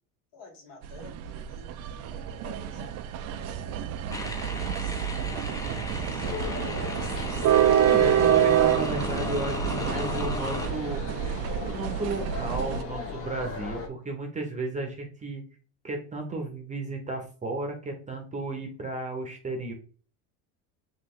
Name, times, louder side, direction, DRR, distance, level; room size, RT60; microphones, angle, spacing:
voice 1, 0.3-6.6, left 4 dB, 55° left, 1 dB, 1.9 m, -51 dB
sound 1, 0.8-12.8, right 10 dB, 45° right, 0.4 m, -27 dB
sound 2, 4.1-10.7, left 2 dB, 10° left, 0.6 m, -36 dB
sound 3, 6.2-13.9, left 5 dB, 35° left, 1.1 m, -37 dB
voice 2, 7.8-11.0 11.7-15.4 15.8-19.7, right 2 dB, 20° right, 3 dB, 0.9 m, -33 dB
5.1 x 2.7 x 3.1 m, 0.41 s
supercardioid pair, 125°, 39 cm